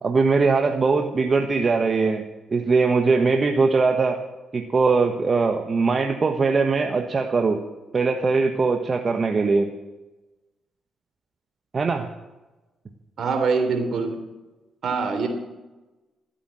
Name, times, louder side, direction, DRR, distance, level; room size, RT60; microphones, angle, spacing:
voice 1, 0.0-4.2 4.5-7.6 7.9-9.7 11.7-12.1, right 4 dB, 40° right, 4 dB, 1.3 m, -21 dB
voice 2, 13.2-14.2 14.8-15.3, right 4 dB, 65° right, 5 dB, 3.4 m, -23 dB
14.5 x 8.6 x 7.6 m, 1.1 s
supercardioid pair, 60°, 0 cm